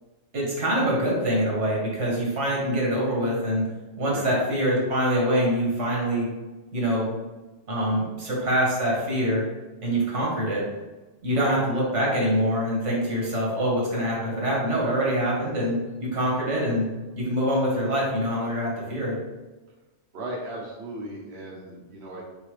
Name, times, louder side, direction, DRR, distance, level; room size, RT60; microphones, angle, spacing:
voice 1, 0.3-3.7 4.0-6.3 6.7-7.1 7.7-9.4 9.8-10.6 11.2-16.9 17.1-19.2, equal, 80° right, -4 dB, 1.6 m, -24 dB
voice 2, 20.1-22.2, right 1 dB, 65° right, -4 dB, 1.1 m, -36 dB
3.9 x 3.8 x 3.2 m, 1.2 s
omnidirectional pair, 1.2 m